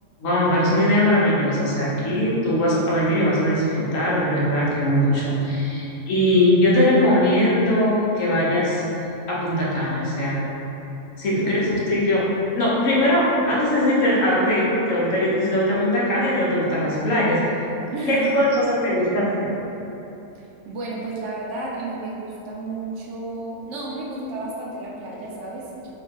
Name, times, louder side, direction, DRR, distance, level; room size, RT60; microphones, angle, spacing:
voice 1, 0.2-8.8 9.3-10.4 11.2-12.2 12.5-17.4 18.1-19.5, left 1 dB, 75° left, -6 dB, 1.1 m, -20 dB
voice 2, 17.9-18.5 20.7-25.9, right 2 dB, 70° right, -4 dB, 0.8 m, -31 dB
2.8 x 2.8 x 3.7 m, 3.0 s
omnidirectional pair, 1.4 m